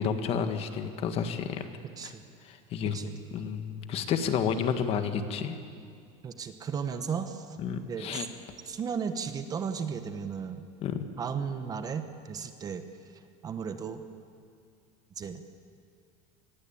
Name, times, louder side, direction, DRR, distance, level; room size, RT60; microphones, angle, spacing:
voice 1, 0.0-1.7 2.5-2.9 3.3-5.6 7.6-8.3 10.8-11.0, left 7 dB, 35° left, 8 dB, 1.7 m, -30 dB
voice 2, 2.8-3.2 6.2-7.6 7.9-8.3 8.7-10.7 11.2-14.0 15.2-15.4, right 6 dB, 25° right, 9 dB, 1.2 m, -35 dB
27.0 x 20.5 x 8.7 m, 2.3 s
cardioid pair, 160°, 16 cm